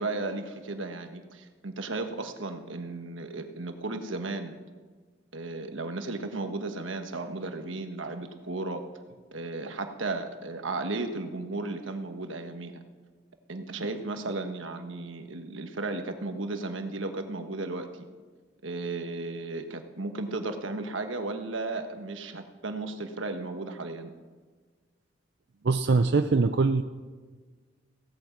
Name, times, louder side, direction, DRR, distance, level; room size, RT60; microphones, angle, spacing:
voice 1, 0.0-4.6 5.3-8.8 9.3-12.7 13.5-18.1 18.6-24.1, right 2 dB, 85° right, 6 dB, 1.4 m, -34 dB
voice 2, 25.6-26.8, right 4 dB, 60° right, 8 dB, 0.5 m, -22 dB
16.5 x 9.0 x 7.4 m, 1.4 s
head